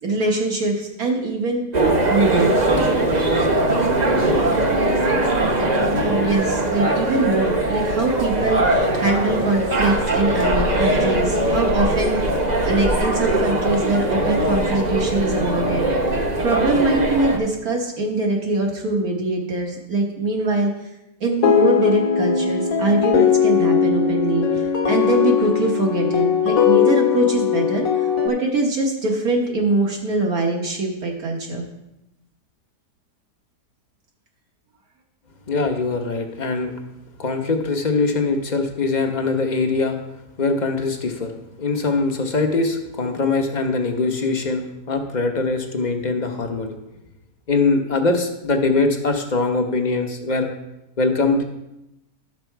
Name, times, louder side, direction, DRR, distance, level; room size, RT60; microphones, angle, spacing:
voice 1, 0.0-1.6 2.1-2.6 6.0-15.9 16.4-20.7 21.2-27.9 28.2-31.7, right 2 dB, 65° right, 0 dB, 1.7 m, -22 dB
sound 1, 1.7-17.4, right 1 dB, 30° right, 1.0 m, -20 dB
sound 2, 21.4-28.3, left 8 dB, 60° left, 1.4 m, -19 dB
voice 2, 35.5-36.7 37.2-40.0 40.4-41.3 41.6-46.7 47.5-50.5 51.0-51.4, left 3 dB, 35° left, 4 dB, 0.9 m, -22 dB
12.0 x 6.1 x 4.6 m, 0.90 s
omnidirectional pair, 1.7 m